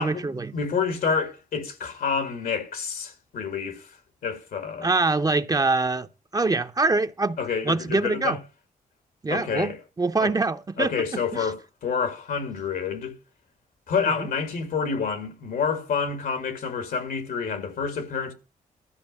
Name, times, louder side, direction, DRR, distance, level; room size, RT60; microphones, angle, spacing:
voice 1, 0.0-0.5 4.8-6.1 6.3-7.4 7.6-8.4 9.2-10.9 11.3-11.5 14.2-14.3, right 3 dB, 25° right, 0.7 m, -24 dB
voice 2, 0.5-3.9 4.2-4.9 7.4-8.4 9.3-9.8 10.2-10.3 10.8-13.1 13.9-18.3, left 5 dB, 85° left, 2.0 m, -28 dB
13.0 x 5.1 x 7.4 m
cardioid pair, 75°, 15 cm